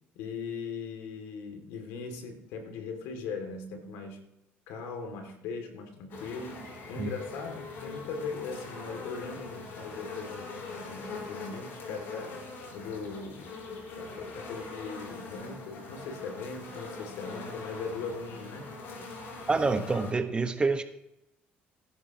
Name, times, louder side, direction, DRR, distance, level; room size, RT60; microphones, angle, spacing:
voice 1, 0.2-4.2 4.7-12.4 12.7-13.5 13.9-18.7, left 4 dB, 85° left, 5 dB, 2.6 m, -39 dB
sound 1, 6.1-20.1, left 3 dB, 65° left, 4.9 m, -42 dB
voice 2, 19.5-20.8, right 4 dB, 25° right, 8 dB, 1.3 m, -27 dB
20.0 x 11.5 x 3.0 m, 0.87 s
cardioid pair, 100°, 4 cm